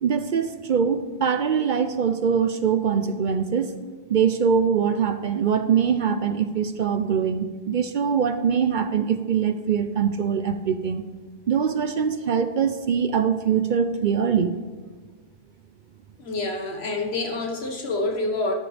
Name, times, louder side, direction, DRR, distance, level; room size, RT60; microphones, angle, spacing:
voice 1, 0.0-3.7 4.1-11.0 11.5-14.6, right 7 dB, 55° right, 10 dB, 0.6 m, -23 dB
voice 2, 16.2-18.5, left 2 dB, 75° left, 2 dB, 1.7 m, -27 dB
13.0 x 11.0 x 3.4 m, 1.4 s
omnidirectional pair, 1.1 m